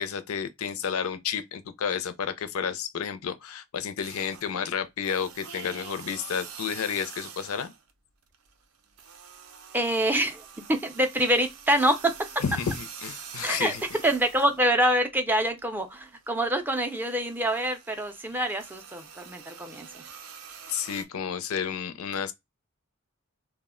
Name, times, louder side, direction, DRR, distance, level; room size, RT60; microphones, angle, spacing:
voice 1, 0.0-7.7 12.4-13.8 20.7-22.3, left 7 dB, 70° left, 0.4 m, -31 dB
sound 1, 4.0-4.6 5.0-7.9 8.2-15.0 15.4-21.0, right 7 dB, 75° right, 0.5 m, -45 dB
voice 2, 9.7-12.1 13.4-13.7 14.0-20.0, right 1 dB, 10° right, 0.4 m, -26 dB
2.4 x 2.1 x 3.5 m
head